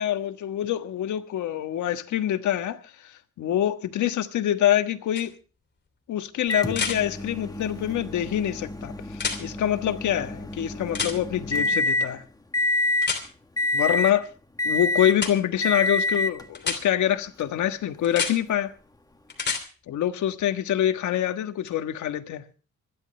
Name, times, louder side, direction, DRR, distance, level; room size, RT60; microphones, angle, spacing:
voice 1, 0.0-5.3 6.1-8.9 9.4-12.2 13.7-14.3 14.6-18.7 19.9-22.4, left 11 dB, 75° left, 1.5 m, -25 dB
sound 1, 5.2-5.3 6.7-7.0 9.1-9.4 10.9-11.2 13.0-13.2 15.2-15.3 16.6-16.8 18.0-18.3 19.3-19.6 21.7-21.8, left 5 dB, 35° left, 3.1 m, -28 dB
Microwave oven, 6.5-12.1 12.5-13.2 13.6-14.2 14.6-15.2 15.6-16.4 17.4-17.5 19.5-19.6, left 2 dB, 10° left, 1.5 m, -27 dB
26.0 x 11.0 x 3.3 m
cardioid pair, 90°, 30 cm